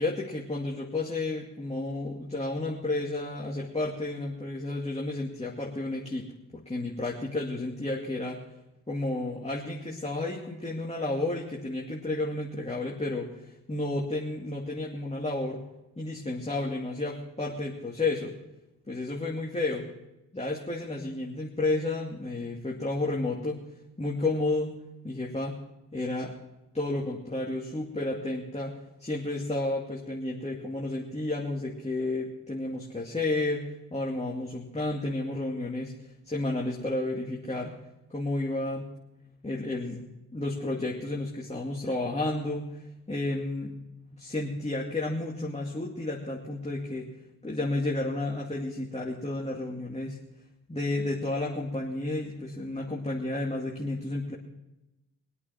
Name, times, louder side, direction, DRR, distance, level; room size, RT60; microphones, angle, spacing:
voice 1, 0.0-6.2 6.5-8.4 8.9-15.6 16.0-18.3 18.9-19.9 20.3-23.6 24.0-25.5 25.9-26.3 26.7-28.7 29.0-35.9 36.2-37.7 38.1-38.9 39.4-40.1 40.3-42.8 43.1-43.7 44.2-47.1 47.4-50.2 50.7-54.3, left 2 dB, 15° left, -3 dB, 2.4 m, -31 dB
23.0 x 8.5 x 4.5 m, 0.94 s
cardioid pair, 60°, 37 cm